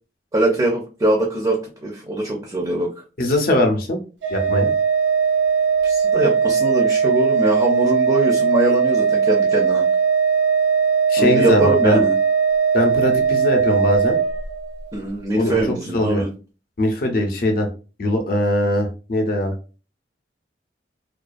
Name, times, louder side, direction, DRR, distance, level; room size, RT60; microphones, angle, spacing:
voice 1, 0.3-2.9 5.8-9.8 11.2-12.2 14.9-16.3, right 1 dB, 20° right, 0 dB, 0.4 m, -22 dB
voice 2, 3.2-4.0 4.3-4.7 11.1-12.0 12.7-14.2 15.3-16.2 16.8-17.7 18.0-19.5, left 1 dB, 55° left, 4 dB, 0.6 m, -21 dB
Organ, 4.2-14.9, right 6 dB, 85° right, 0.6 m, -19 dB
2.4 x 2.2 x 2.4 m, 0.34 s
head